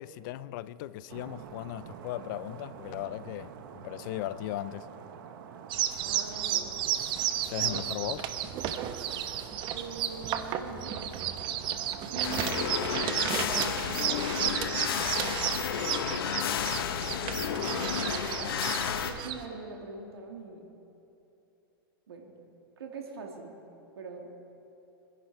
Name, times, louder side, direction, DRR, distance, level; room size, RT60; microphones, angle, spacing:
voice 1, 0.0-4.9 7.5-8.2, left 14 dB, 55° left, 0.6 m, -37 dB
sound 1, 1.1-13.0, right 7 dB, 60° right, 1.2 m, -46 dB
sound 2, 5.7-19.4, right 10 dB, 40° right, 1.0 m, -33 dB
voice 2, 6.0-6.7 7.6-7.8 9.7-10.9 12.1-12.7 13.4-14.3 17.2-17.9 19.0-20.6 22.1-22.4 22.8-23.5 24.0-24.3, right 4 dB, 85° right, 2.1 m, -42 dB
sound 3, 12.2-19.1, left 8 dB, 75° left, 1.1 m, -31 dB
24.5 x 11.0 x 4.6 m
hypercardioid pair, 110°, 12 cm